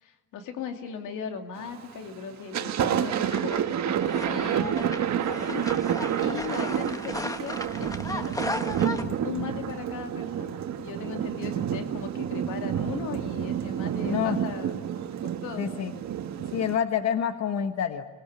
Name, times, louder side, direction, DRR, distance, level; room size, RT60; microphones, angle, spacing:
voice 1, 0.0-5.7 6.2-14.8 15.2-15.7, left 6 dB, 90° left, 5 dB, 2.8 m, -38 dB
Thunder, 1.6-2.0 2.3-16.8, right 9 dB, 65° right, 1.5 m, -29 dB
sound 1, 3.2-9.0, left 1 dB, 10° left, 1.5 m, -36 dB
voice 2, 14.1-14.4 15.6-15.9 16.5-18.0, left 8 dB, 60° left, 8 dB, 1.4 m, -27 dB
26.5 x 20.5 x 9.7 m, 1.3 s
cardioid pair, 90°, 30 cm